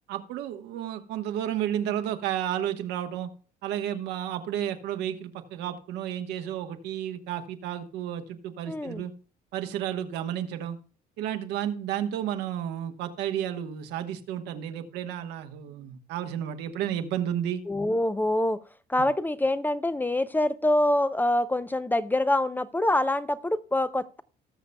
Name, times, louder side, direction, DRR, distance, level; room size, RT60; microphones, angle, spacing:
voice 1, 0.1-3.3 3.6-9.1 9.5-10.8 11.2-17.6, right 10 dB, 85° right, 7 dB, 1.2 m, -32 dB
voice 2, 8.7-9.0 17.7-18.6 18.9-24.2, left 1 dB, 10° left, 14 dB, 0.4 m, -25 dB
19.0 x 6.7 x 2.2 m, 0.39 s
cardioid pair, 110°, 17 cm